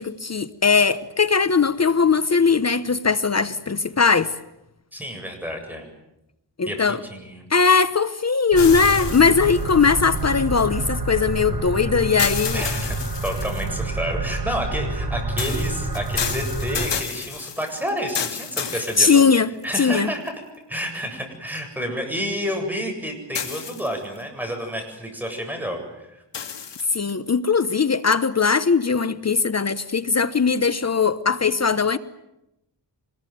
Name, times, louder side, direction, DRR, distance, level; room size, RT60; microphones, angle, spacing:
voice 1, 0.0-4.3 6.6-7.0 7.5-12.6 18.7-19.5 19.8-20.1 26.9-32.0, left 5 dB, 35° left, 1.0 m, -19 dB
voice 2, 4.9-5.9 6.7-7.5 12.5-13.0 13.2-19.3 19.6-20.3 20.7-26.2, equal, 5° right, 7.9 m, -30 dB
sound 1, 8.5-10.7 12.2-13.8 15.4-19.6 20.3-20.4 23.3-24.2 26.3-27.1, left 7 dB, 75° left, 2.5 m, -31 dB
sound 2, 8.5-16.9, right 2 dB, 55° right, 6.6 m, -28 dB
25.5 x 21.0 x 9.4 m
wide cardioid pair, 90°, 43 cm